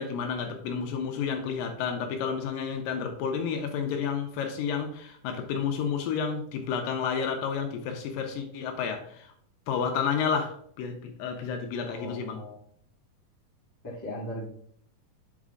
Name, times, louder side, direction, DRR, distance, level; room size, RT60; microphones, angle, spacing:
voice 1, 0.0-9.3 9.7-12.4, left 6 dB, 75° left, 5 dB, 2.3 m, -31 dB
voice 2, 11.7-12.6 13.8-14.5, left 1 dB, 10° left, -6 dB, 1.0 m, -38 dB
8.4 x 4.2 x 3.7 m, 0.62 s
omnidirectional pair, 4.2 m